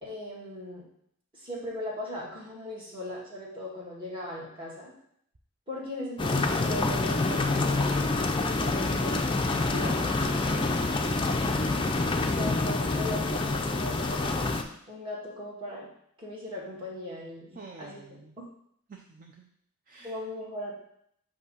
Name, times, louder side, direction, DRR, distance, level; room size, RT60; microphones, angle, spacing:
voice 1, 0.0-0.8 1.3-4.9 5.7-8.0 8.4-10.9 12.1-15.9 16.2-18.5 20.0-20.9, left 1 dB, 25° right, -6 dB, 1.9 m, -39 dB
sound 1, 6.2-14.6, left 3 dB, 20° left, 0.4 m, -27 dB
voice 2, 17.5-18.4 18.9-19.5 19.9-20.2, right 3 dB, 40° right, 1 dB, 0.6 m, -48 dB
8.1 x 2.8 x 5.5 m, 0.69 s
head